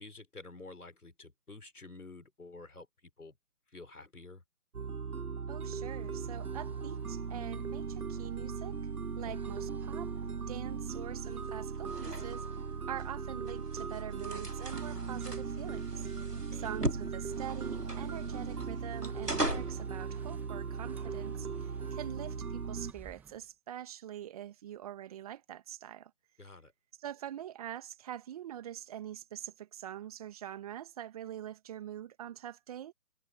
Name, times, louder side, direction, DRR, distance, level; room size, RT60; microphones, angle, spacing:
voice 1, 0.0-2.9 3.2-3.3 3.7-4.4 9.2-9.4 16.5-16.7 26.4-26.7, left 3 dB, 70° left, 4.7 m, -50 dB
sound 1, 4.7-22.9, right 5 dB, 70° right, 1.2 m, -38 dB
voice 2, 5.5-8.8 9.2-10.1 10.5-12.5 12.9-16.1 16.5-26.1 27.0-32.9, right 11 dB, 25° right, 2.5 m, -44 dB
sound 2, 5.7-23.5, right 6 dB, 5° right, 1.9 m, -57 dB
sound 3, 11.2-19.8, right 1 dB, 90° right, 4.9 m, -40 dB
figure-of-eight pair, 145°, 46 cm